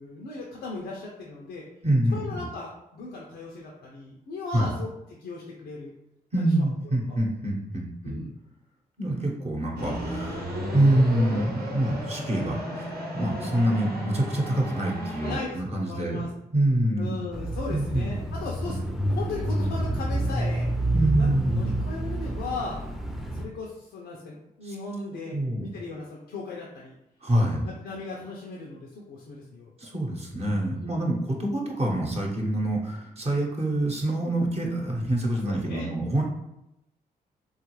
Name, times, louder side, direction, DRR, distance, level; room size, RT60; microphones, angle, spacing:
voice 1, 0.0-1.6 2.1-4.9 5.2-5.9 6.4-6.6 7.1-7.2 8.0-8.3 15.2-16.3 17.0-20.7 21.2-22.8 23.4-27.0 27.6-29.7 30.7-31.1 35.5-35.9, left 3 dB, 90° left, -2 dB, 0.5 m, -37 dB
voice 2, 1.8-2.5 4.5-4.7 6.3-8.2 9.0-12.9 13.1-17.2 17.7-18.3 20.9-21.7 24.6-24.7 25.3-25.7 27.2-27.7 29.8-36.2, right 1 dB, 35° right, -1 dB, 0.9 m, -26 dB
sound 1, 9.8-15.4, equal, 65° right, 0.9 m, -34 dB
Bicycle / Mechanisms, 17.3-23.5, right 1 dB, ahead, 0.5 m, -28 dB
3.0 x 2.3 x 3.0 m, 0.85 s
supercardioid pair, 50°, 17 cm